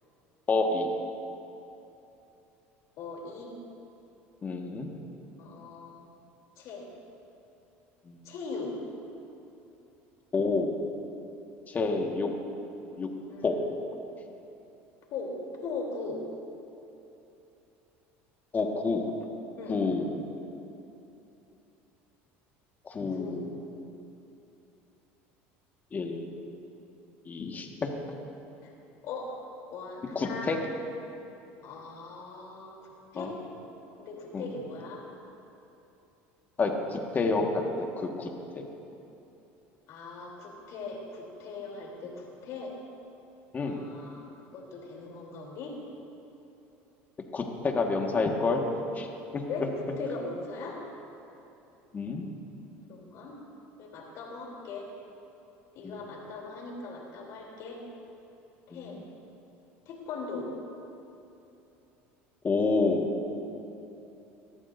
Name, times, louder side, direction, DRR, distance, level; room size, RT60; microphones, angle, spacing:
voice 1, 0.5-0.9 4.4-4.9 8.1-8.2 10.3-10.7 11.7-12.3 13.0-13.1 13.4-13.6 18.5-19.0 19.7-20.2 22.9-23.7 25.9-26.4 27.3-27.9 30.1-30.6 33.2-33.3 34.3-34.5 36.6-38.3 38.6-38.7 43.5-43.8 47.3-48.6 48.9-49.1 49.3-49.4 51.9-52.3 55.8-56.0 58.7-59.0 62.4-63.1, left 3 dB, 30° left, 2 dB, 1.7 m, -29 dB
voice 2, 3.0-3.5 5.4-6.0 6.6-6.9 8.2-8.7 13.3-13.5 15.1-15.3 15.6-16.2 19.6-19.8 23.1-23.4 28.6-28.7 29.0-29.3 29.7-30.5 31.6-33.3 34.0-35.0 39.9-42.7 43.6-45.7 49.5-49.7 50.0-50.8 52.9-53.4 53.8-54.9 55.7-57.8 58.7-59.0 59.9-60.5, left 4 dB, 60° left, -2 dB, 3.5 m, -39 dB
19.5 x 13.5 x 2.7 m, 2.9 s
supercardioid pair, 95°, 6 cm